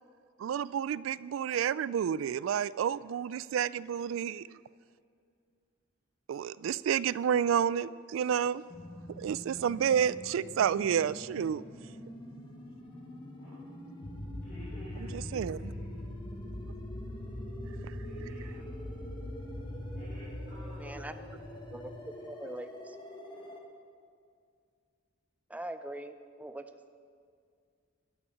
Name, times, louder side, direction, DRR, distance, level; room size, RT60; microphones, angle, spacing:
voice 1, 0.4-4.5 6.3-8.6 9.1-11.6 15.1-15.7 17.8-18.0, right 8 dB, 80° right, 19 dB, 0.3 m, -30 dB
sound 1, 8.7-23.6, equal, 25° left, 1.4 m, -47 dB
voice 2, 13.3-13.7 14.4-15.2 15.5-16.1 18.0-18.7 19.6-21.1 22.0-22.2 23.3-23.5, left 1 dB, 55° left, -11 dB, 3.6 m, -54 dB
sound 2, 14.0-22.0, left 1 dB, 75° left, 1.6 m, -42 dB
voice 3, 20.8-21.1 21.7-23.0 25.5-26.9, right 1 dB, 5° right, 9 dB, 0.5 m, -42 dB
12.5 x 10.0 x 5.8 m, 2.2 s
head